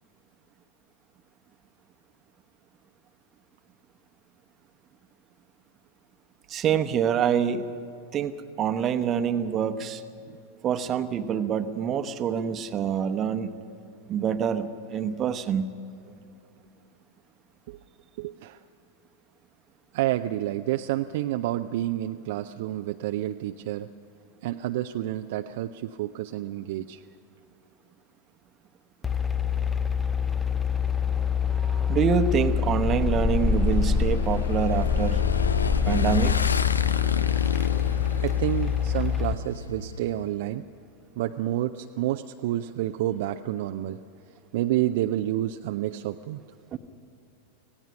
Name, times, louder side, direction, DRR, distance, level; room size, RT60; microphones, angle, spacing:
voice 1, 6.5-7.6 8.1-10.0 10.6-13.5 14.1-15.7 31.5-35.3 35.8-36.5 46.7-46.8, right 8 dB, 30° right, 10 dB, 1.0 m, -26 dB
voice 2, 18.2-18.6 19.9-23.9 24.4-27.0 38.2-40.7 41.2-44.0 44.5-46.4, right 14 dB, 50° right, 7 dB, 0.5 m, -29 dB
sound 1, 29.0-39.3, left 7 dB, 15° left, 0.6 m, -25 dB
Motorcycle / Engine, 33.3-40.3, left 5 dB, 75° left, 0.5 m, -31 dB
25.5 x 17.5 x 5.7 m, 2.7 s
figure-of-eight pair, 90°, 0 cm